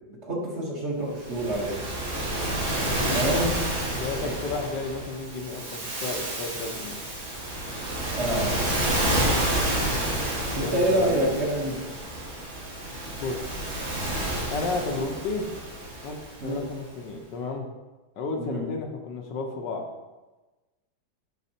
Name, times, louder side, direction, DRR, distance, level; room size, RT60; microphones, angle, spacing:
voice 1, 0.2-1.8 3.1-3.5 4.2-4.3 8.1-8.7 10.6-11.8 16.4-16.7 18.4-18.7, right 1 dB, 40° right, -3 dB, 1.3 m, -27 dB
Waves surf, 1.2-16.7, right 1 dB, 80° right, 2.5 m, -29 dB
voice 2, 2.8-3.2 4.0-7.0 10.4-11.3 13.2-13.4 14.5-15.5 16.0-17.7 18.2-19.9, left 3 dB, 75° left, 3 dB, 1.5 m, -32 dB
11.0 x 4.0 x 2.8 m, 1.1 s
omnidirectional pair, 2.0 m